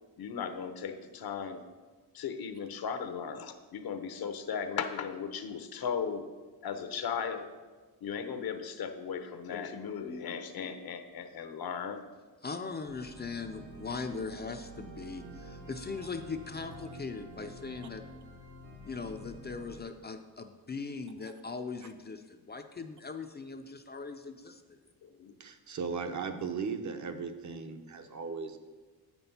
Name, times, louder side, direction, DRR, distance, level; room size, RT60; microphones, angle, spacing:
voice 1, 0.2-1.6 2.1-6.3 6.6-7.5 8.0-12.0 25.0-25.3, left 6 dB, 70° left, 8 dB, 0.8 m, -37 dB
voice 2, 12.4-18.0 18.8-24.8, left 4 dB, 25° left, 6 dB, 0.4 m, -40 dB
sound 1, 12.8-19.8, right 1 dB, 85° right, 1.7 m, -48 dB
voice 3, 25.4-28.6, right 5 dB, 50° right, 7 dB, 0.8 m, -37 dB
8.5 x 6.0 x 5.5 m, 1.4 s
wide cardioid pair, 155°, 37 cm